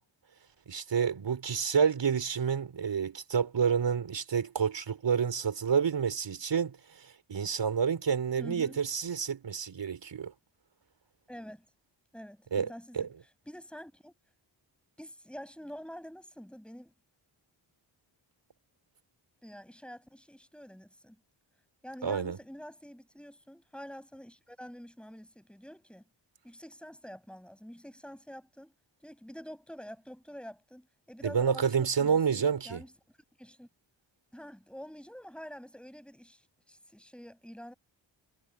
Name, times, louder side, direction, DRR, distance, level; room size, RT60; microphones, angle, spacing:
voice 1, 0.7-10.3 12.5-12.7 12.9-13.1 22.0-22.4 31.2-32.8, right 6 dB, 60° right, 3.6 m, -29 dB
voice 2, 8.4-8.8 11.3-11.7 12.1-13.1 13.5-14.1 15.0-16.9 19.4-21.2 21.8-26.0 26.4-28.7 29.0-32.9 33.4-33.7 34.3-37.7, equal, ahead, 6.2 m, -47 dB
cardioid pair, 55°, 48 cm